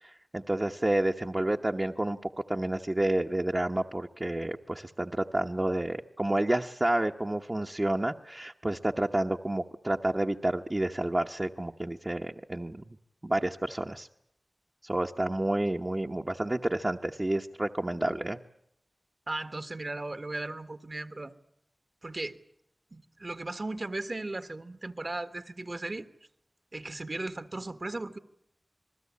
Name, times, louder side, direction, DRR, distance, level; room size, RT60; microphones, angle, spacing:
voice 1, 0.0-12.8 13.2-14.1 14.8-18.4, right 1 dB, 30° right, 2 dB, 1.0 m, -30 dB
voice 2, 19.3-21.3 22.0-22.4 22.9-26.1 26.7-28.2, right 2 dB, 50° right, 11 dB, 1.4 m, -36 dB
28.0 x 20.5 x 8.5 m, 0.73 s
wide cardioid pair, 75°, 0 cm